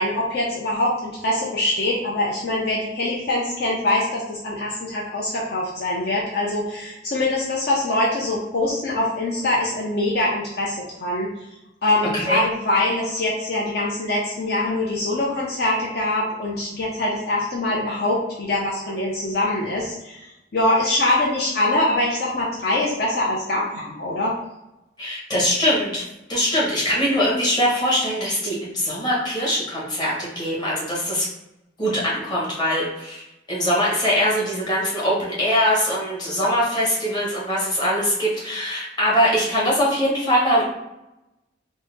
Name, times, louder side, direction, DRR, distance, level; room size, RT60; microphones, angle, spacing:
voice 1, 0.0-11.3 11.8-20.2 20.5-24.3, left 1 dB, 55° left, -4 dB, 0.7 m, -23 dB
voice 2, 25.0-26.0 26.3-31.3 31.8-33.2 33.5-40.6, equal, 25° left, -6 dB, 1.3 m, -22 dB
3.8 x 2.0 x 4.0 m, 0.92 s
head